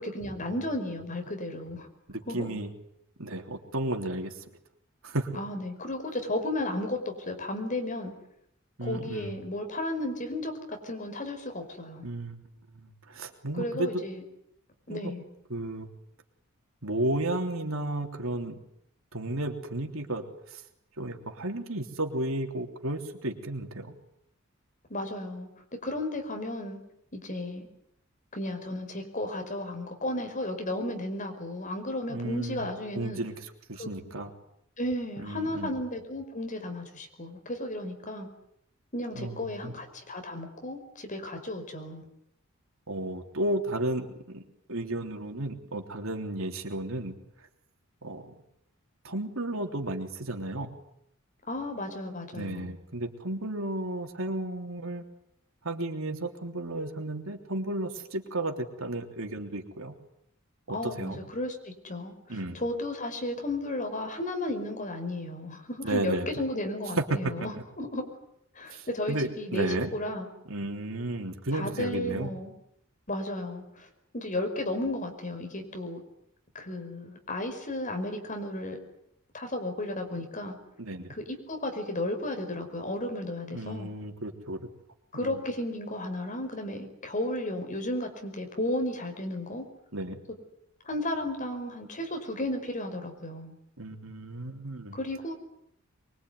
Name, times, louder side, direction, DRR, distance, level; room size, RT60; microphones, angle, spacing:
voice 1, 0.0-1.9 2.3-2.6 5.3-8.1 8.8-12.1 13.6-14.2 14.9-15.3 24.9-25.5 25.8-26.8 27.1-27.7 28.3-33.2 33.8-34.1 34.8-38.3 38.9-42.0 51.5-52.7 60.7-62.1 62.5-68.0 68.6-70.3 71.5-72.5 73.1-73.9 74.1-76.0 76.5-78.8 79.3-80.6 81.1-83.9 85.1-89.7 90.8-93.5 94.9-95.3, left 1 dB, 35° left, 5 dB, 5.3 m, -34 dB
voice 2, 2.1-2.7 3.2-4.4 5.0-5.4 8.8-9.3 12.0-14.0 14.9-15.1 15.5-15.9 16.8-18.6 19.1-20.6 21.0-23.9 32.1-32.7 32.9-33.3 33.7-34.3 35.2-35.7 39.1-39.7 42.9-44.4 44.7-47.2 48.0-48.4 49.0-50.7 52.3-55.0 55.6-59.9 60.7-61.2 62.3-62.6 65.8-66.3 67.0-67.1 68.7-69.9 70.5-72.3 80.8-81.1 83.5-84.6 85.2-85.4 89.9-90.2 93.8-95.0, right 1 dB, 70° right, 4 dB, 3.4 m, -33 dB
24.0 x 23.5 x 9.6 m, 0.75 s
head